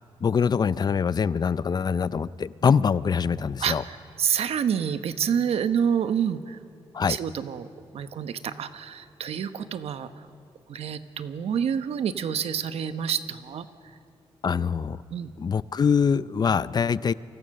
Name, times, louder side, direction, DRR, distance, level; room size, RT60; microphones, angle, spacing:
voice 1, 0.2-3.8 6.9-7.2 14.4-15.0 15.4-17.1, left 6 dB, 45° left, 17 dB, 0.5 m, -24 dB
voice 2, 3.6-6.6 7.0-7.7 7.9-10.3 10.7-13.9 15.1-15.3, right 8 dB, 80° right, 10 dB, 1.1 m, -28 dB
28.5 x 24.0 x 6.6 m, 2.5 s
cardioid pair, 100°, 10 cm